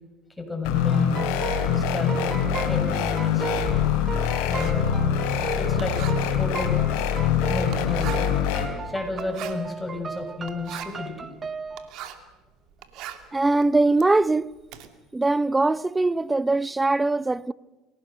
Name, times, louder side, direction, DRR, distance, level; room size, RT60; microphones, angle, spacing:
voice 1, 0.4-1.4 1.7-2.3 2.7-3.6 4.5-5.2 5.6-6.0 6.4-6.8 7.5-8.4 8.8-11.3, left 3 dB, 10° left, 6.8 m, -32 dB
sound 1, 0.6-8.7, left 8 dB, 70° left, 3.6 m, -24 dB
sound 2, 0.9-11.9, right 5 dB, 30° right, 1.4 m, -36 dB
Writing, 2.1-12.3 12.7-14.9, right 11 dB, 60° right, 2.4 m, -43 dB
voice 2, 13.3-14.5 15.1-17.5, right 2 dB, 15° right, 0.7 m, -21 dB
28.0 x 18.0 x 6.8 m
hypercardioid pair, 75°, 0 cm